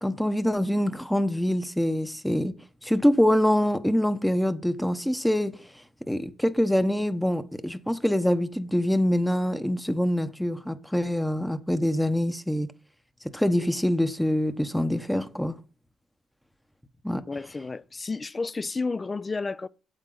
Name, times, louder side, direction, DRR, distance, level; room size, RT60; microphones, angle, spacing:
voice 1, 0.0-2.5 2.8-5.6 6.1-12.7 13.3-15.6 17.0-17.2, left 1 dB, 5° left, 0.9 m, -25 dB
voice 2, 17.3-19.7, left 3 dB, 25° left, 0.4 m, -31 dB
9.0 x 8.2 x 3.9 m
cardioid pair, 90°, 0 cm